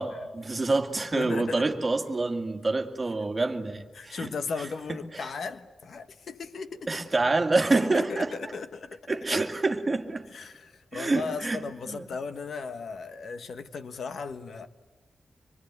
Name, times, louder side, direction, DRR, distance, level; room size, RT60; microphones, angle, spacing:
voice 1, 0.0-4.3 4.9-5.3 6.9-8.5 9.1-10.3 10.9-12.1, right 3 dB, 25° right, 2.1 m, -27 dB
voice 2, 1.1-1.6 3.9-6.9 7.9-9.0 9.3-9.4 10.3-14.7, left 5 dB, 75° left, 1.3 m, -36 dB
25.5 x 23.5 x 9.5 m
wide cardioid pair, 160°, 0 cm